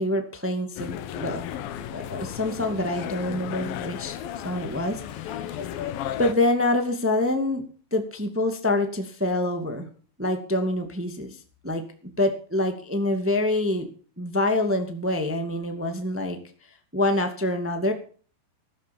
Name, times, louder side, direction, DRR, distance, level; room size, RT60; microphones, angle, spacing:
voice 1, 0.0-1.4 1.9-4.2 4.4-5.9 6.2-7.6 7.9-9.9 10.2-11.8 12.2-13.9 14.2-16.4 16.9-17.9, left 1 dB, 5° right, 6 dB, 1.3 m, -26 dB
sound 1, 0.8-6.3, left 10 dB, 70° left, 2.7 m, -34 dB
16.0 x 12.5 x 5.4 m, 0.42 s
omnidirectional pair, 4.6 m